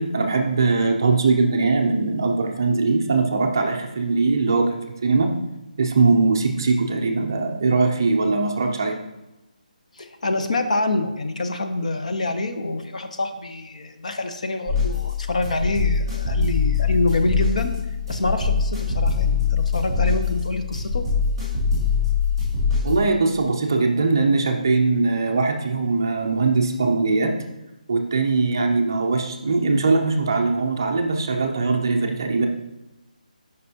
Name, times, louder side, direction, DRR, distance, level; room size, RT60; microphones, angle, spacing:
voice 1, 0.0-4.8 5.0-5.3 5.8-9.0 22.8-27.3 27.9-32.5, right 3 dB, 25° right, 3 dB, 0.5 m, -21 dB
voice 2, 9.9-17.7 18.1-21.0, left 2 dB, 55° left, 7 dB, 0.7 m, -26 dB
sound 1, 14.7-23.0, left 5 dB, ahead, 2.1 m, -23 dB
7.8 x 5.4 x 2.8 m, 0.97 s
hypercardioid pair, 180°, 5 cm